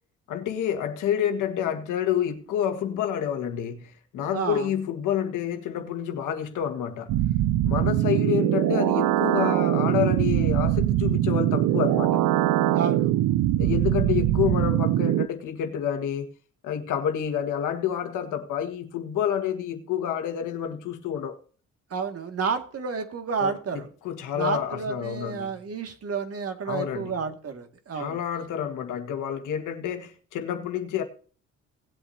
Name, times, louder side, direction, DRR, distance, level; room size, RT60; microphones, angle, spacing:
voice 1, 0.3-7.1 7.6-12.2 13.6-16.3 16.6-21.4 23.4-25.6 26.7-27.2 27.9-31.0, left 9 dB, 85° left, 1.8 m, -28 dB
voice 2, 4.3-4.7 12.7-13.1 21.9-23.9 24.3-28.2, right 5 dB, 50° right, 2.2 m, -30 dB
sound 1, 7.1-15.3, right 13 dB, 90° right, 0.6 m, -22 dB
18.5 x 8.3 x 2.8 m
cardioid pair, 90°, 30 cm